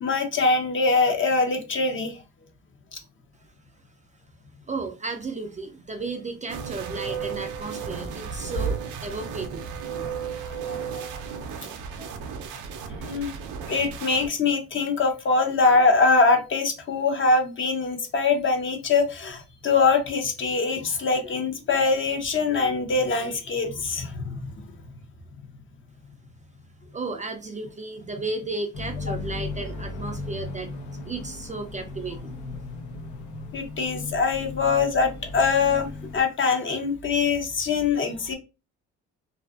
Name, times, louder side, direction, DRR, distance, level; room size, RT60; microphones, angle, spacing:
voice 1, 0.0-2.2 2.9-3.0 9.9-10.0 10.5-11.2 12.0-12.1 13.0-13.3 13.7-24.6 33.5-38.3, left 4 dB, 40° left, 0.7 m, -23 dB
voice 2, 4.7-9.6 26.9-30.7 31.1-32.3, right 3 dB, 25° right, 0.4 m, -34 dB
sound 1, 6.5-14.3, right 7 dB, 85° right, 0.5 m, -35 dB
sound 2, 28.7-36.2, left 3 dB, 80° left, 0.7 m, -36 dB
2.5 x 2.4 x 2.3 m
cardioid pair, 90°, 30 cm